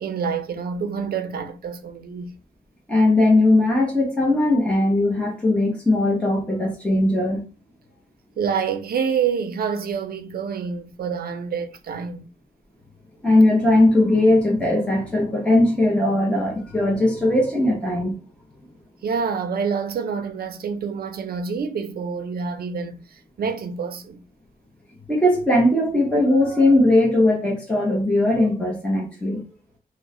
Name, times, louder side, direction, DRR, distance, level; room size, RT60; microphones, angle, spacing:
voice 1, 0.0-2.3 8.4-12.3 19.0-24.2, right 6 dB, 70° right, 0.5 m, -27 dB
voice 2, 2.9-7.4 13.2-18.2 25.1-29.4, left 1 dB, 5° left, 0.8 m, -19 dB
3.0 x 2.1 x 3.6 m
wide cardioid pair, 130°, 16 cm